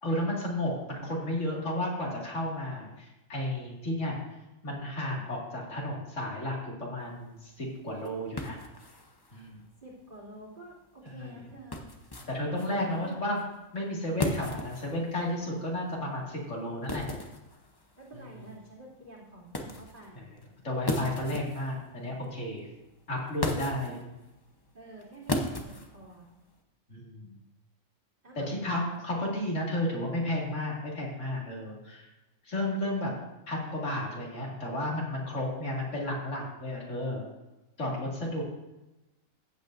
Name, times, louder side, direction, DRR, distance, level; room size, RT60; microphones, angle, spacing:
voice 1, 0.0-4.2 4.6-8.6 9.3-9.6 11.2-11.3 12.3-13.4 13.7-17.1 18.1-18.3 20.1-20.2 20.6-22.7 23.1-24.0 26.9-27.4 28.5-32.1 32.4-33.1 33.5-37.2 37.8-38.4, left 1 dB, 60° left, -3 dB, 2.5 m, -33 dB
sound 1, 7.0-26.6, left 1 dB, 20° left, 0.7 m, -39 dB
voice 2, 9.8-11.9 12.6-13.4 18.0-20.3 23.4-23.8 24.7-26.3 28.2-28.5, right 2 dB, 35° right, -7 dB, 2.9 m, -49 dB
15.0 x 8.4 x 2.6 m, 1.0 s
omnidirectional pair, 1.4 m